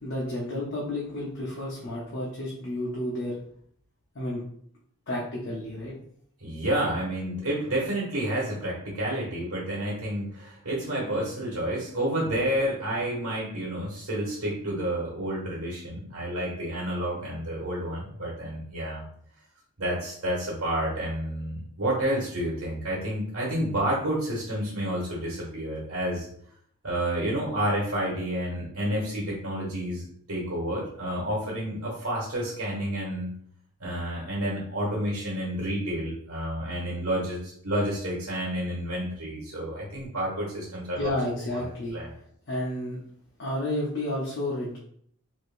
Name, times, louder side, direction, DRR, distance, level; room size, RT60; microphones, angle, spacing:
voice 1, 0.0-3.4 4.1-4.4 5.1-5.9 41.0-42.0 42.5-43.0 43.4-44.8, left 1 dB, 55° left, -5 dB, 0.7 m, -31 dB
voice 2, 6.4-19.0 19.8-26.2 26.8-33.3 33.8-41.1 41.6-42.1, right 1 dB, 80° right, -5 dB, 1.2 m, -30 dB
3.4 x 2.9 x 2.5 m, 0.65 s
head